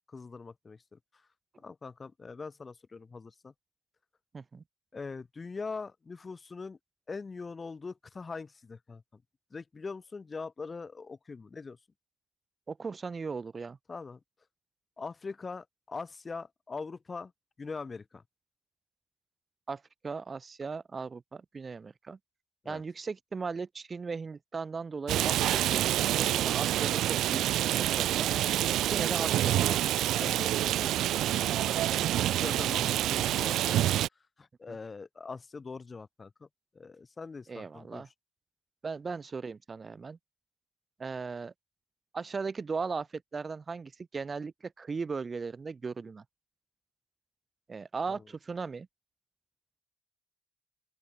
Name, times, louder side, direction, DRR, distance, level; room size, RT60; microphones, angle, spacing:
voice 1, 0.1-1.0 1.6-3.5 4.9-6.8 7.1-9.0 9.5-11.8 13.9-14.2 15.0-17.3 17.6-18.2 22.6-22.8 29.1-29.3 30.2-30.9 31.3-34.0 34.4-36.5 36.7-38.0 48.1-48.2, left 4 dB, 30° left, 4.1 m, -42 dB
voice 2, 12.7-13.8 19.7-22.2 22.7-27.4 28.0-29.8 34.7-34.8 37.5-38.1 38.8-40.2 41.0-41.5 42.1-46.2 47.7-48.9, right 4 dB, 35° right, 7.1 m, -37 dB
Rain, 25.1-34.1, right 13 dB, 80° right, 0.8 m, -27 dB
open air
cardioid pair, 90°, 0 cm